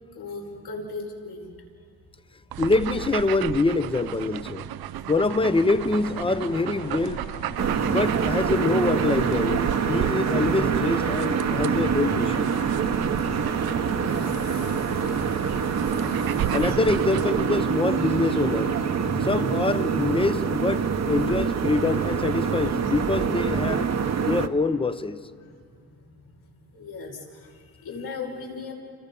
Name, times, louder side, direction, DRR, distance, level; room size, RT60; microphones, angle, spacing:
voice 1, 0.1-1.5 5.0-5.1 13.9-15.4 15.7-16.6 18.9-19.6 25.4-25.8 26.4-28.7, left 3 dB, 80° left, 5.6 m, -39 dB
sound 1, 2.5-17.6, right 13 dB, 75° right, 0.6 m, -35 dB
voice 2, 2.6-4.7 5.1-7.3 7.8-12.5 16.5-18.8 19.2-23.9 24.2-25.2, left 3 dB, 15° left, 0.7 m, -25 dB
sound 2, 5.4-18.9, left 5 dB, 65° left, 1.8 m, -42 dB
sound 3, 7.6-24.5, right 6 dB, 45° right, 1.0 m, -25 dB
29.5 x 29.0 x 5.5 m
wide cardioid pair, 135°, 37 cm